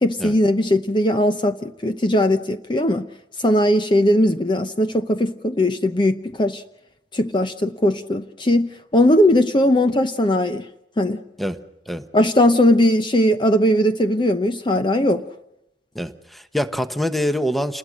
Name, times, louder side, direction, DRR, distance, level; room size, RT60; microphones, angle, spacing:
voice 1, 0.0-3.1 3.4-6.6 7.1-10.7 11.0-11.2 12.1-15.2, left 1 dB, 25° left, 0.8 m, -19 dB
voice 2, 15.9-17.8, equal, ahead, 1.0 m, -25 dB
28.5 x 20.5 x 6.4 m
head